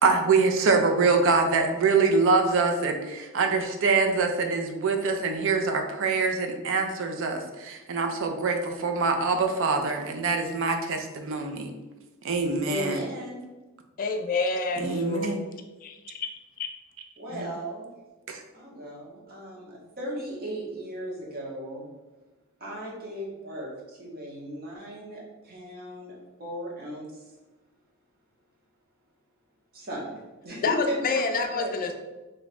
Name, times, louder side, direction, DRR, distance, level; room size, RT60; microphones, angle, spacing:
voice 1, 0.0-11.7 12.2-13.0 14.8-15.4 17.3-17.5 18.3-18.4, right 4 dB, 65° right, 5 dB, 0.5 m, -24 dB
voice 2, 12.6-13.5 17.2-18.0 18.5-21.9 22.6-26.1 26.4-27.2 29.7-30.2 30.4-31.0 31.3-32.0, equal, 45° right, -3 dB, 1.0 m, -36 dB
voice 3, 14.0-15.4 15.8-16.3 16.6-16.7 30.6-32.0, left 4 dB, 40° left, 6 dB, 0.3 m, -28 dB
3.2 x 2.2 x 4.1 m, 1.1 s
head